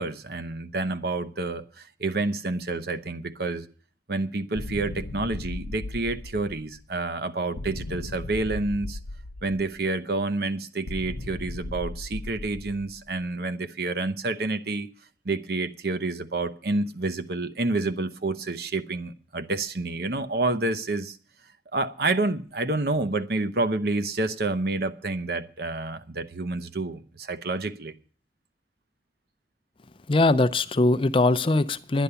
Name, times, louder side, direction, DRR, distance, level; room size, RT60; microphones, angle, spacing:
voice 1, 0.0-3.7 4.1-9.0 9.4-14.9 15.2-21.2 21.7-27.9, right 2 dB, 60° right, 0.9 m, -29 dB
sound 1, 4.5-6.8 7.6-9.9 10.9-13.1, left 2 dB, 80° left, 0.6 m, -37 dB
voice 2, 30.1-32.0, left 2 dB, 30° left, 0.5 m, -21 dB
11.0 x 10.5 x 6.9 m
head